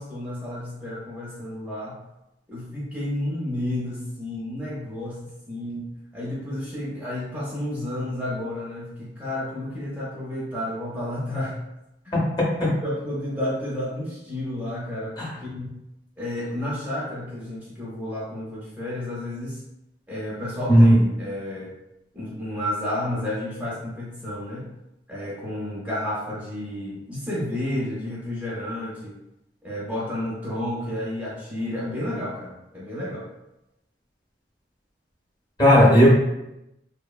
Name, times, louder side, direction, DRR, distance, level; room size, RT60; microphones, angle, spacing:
voice 1, 0.0-2.0 2.5-11.6 12.0-12.1 12.8-15.8 16.2-19.6 20.1-21.7 22.1-24.7 25.1-29.1 29.6-33.3, left 1 dB, 10° right, -7 dB, 0.5 m, -31 dB
voice 2, 35.6-36.1, equal, 25° left, -4 dB, 0.7 m, -14 dB
3.0 x 2.0 x 2.3 m, 0.88 s
head